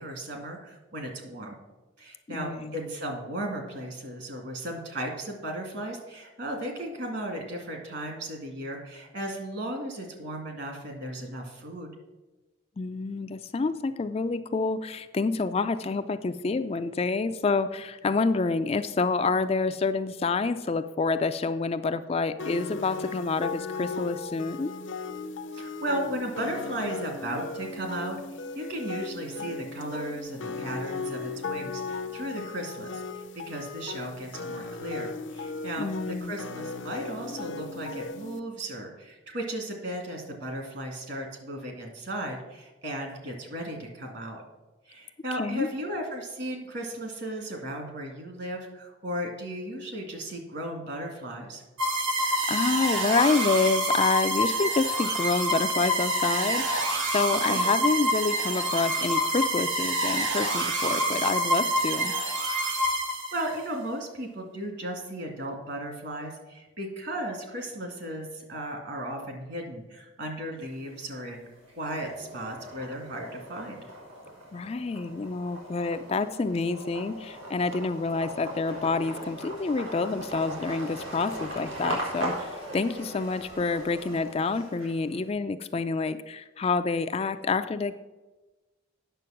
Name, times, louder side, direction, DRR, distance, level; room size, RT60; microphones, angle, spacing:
voice 1, 0.0-1.6 2.0-11.9 18.0-18.2 25.5-28.2 28.6-44.4 44.9-51.6 57.5-57.7 63.3-71.5 71.8-73.8, right 1 dB, 55° right, 3 dB, 2.2 m, -35 dB
voice 2, 2.3-2.7 12.8-24.7 35.8-36.3 45.4-45.7 52.3-62.1 74.5-87.9, left 4 dB, 30° left, 9 dB, 0.3 m, -28 dB
sound 1, 22.4-38.4, left 4 dB, 65° left, 0.6 m, -37 dB
sound 2, 51.8-63.6, right 1 dB, 75° right, 1.6 m, -27 dB
sound 3, 70.6-71.3 71.7-85.2, right 1 dB, 90° right, 4.0 m, -39 dB
9.2 x 6.8 x 5.8 m, 1.1 s
head